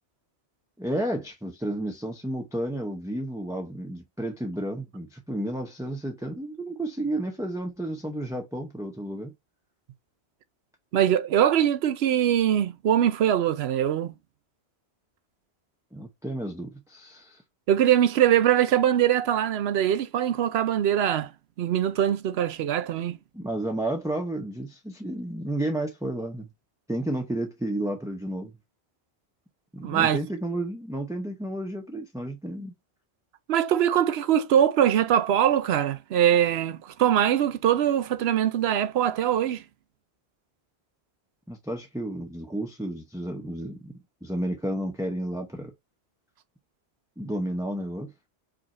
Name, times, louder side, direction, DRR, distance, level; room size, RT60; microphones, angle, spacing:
voice 1, 0.8-9.3 15.9-17.4 23.3-26.5 26.9-28.5 29.7-32.7 41.5-45.7 47.2-48.1, right 1 dB, 5° right, 0.6 m, -32 dB
voice 2, 10.9-14.1 17.7-21.3 21.6-23.2 29.8-30.2 33.5-39.6, right 10 dB, 75° right, 0.8 m, -22 dB
5.1 x 2.5 x 4.2 m
omnidirectional pair, 1.1 m